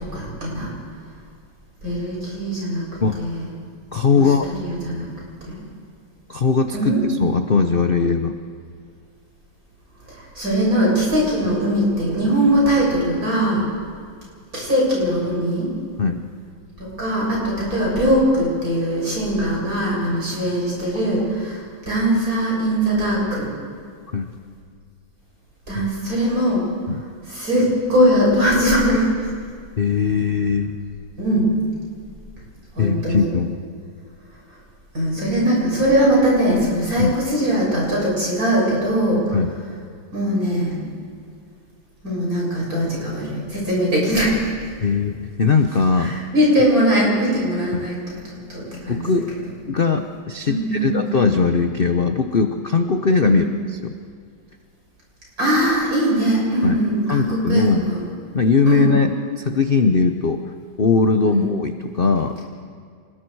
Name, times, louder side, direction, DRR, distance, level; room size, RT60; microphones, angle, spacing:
voice 1, 0.1-0.7 1.8-2.9 3.2-3.5 4.1-5.1 5.4-5.6 6.7-7.0 10.1-13.7 14.5-15.7 16.8-23.5 25.7-26.7 27.3-29.1 31.2-31.5 32.8-33.3 34.9-39.4 40.1-40.8 42.0-44.5 46.0-48.2 48.5-49.0 49.9-50.0 50.5-51.0 53.2-53.5 55.4-58.0 58.7-58.9 61.3-61.5, equal, 45° right, -4 dB, 6.9 m, -21 dB
voice 2, 3.9-4.5 6.3-8.4 11.5-11.6 13.6-13.7 16.0-16.2 20.4-20.5 24.1-24.3 25.8-25.9 26.9-27.0 29.8-30.8 32.8-33.5 37.0-37.1 39.3-39.5 44.8-46.2 47.7-47.9 48.9-49.3 49.7-53.9 56.6-56.8 57.1-57.9 58.3-60.4 60.8-62.4, left 5 dB, 70° left, 7 dB, 0.5 m, -20 dB
27.5 x 20.0 x 4.7 m, 2.2 s
omnidirectional pair, 2.2 m